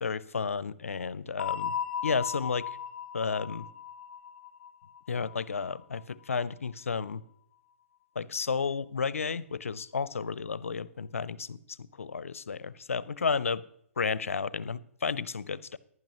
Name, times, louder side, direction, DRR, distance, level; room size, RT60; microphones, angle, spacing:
voice 1, 0.0-1.7 2.0-2.7 3.1-3.7 5.1-7.2 8.2-13.6 14.0-15.8, left 5 dB, 90° left, 19 dB, 0.5 m, -32 dB
sound 1, 1.4-6.0, left 8 dB, 50° left, 1.2 m, -37 dB
15.0 x 11.0 x 3.0 m, 0.71 s
hypercardioid pair, 130°, 7 cm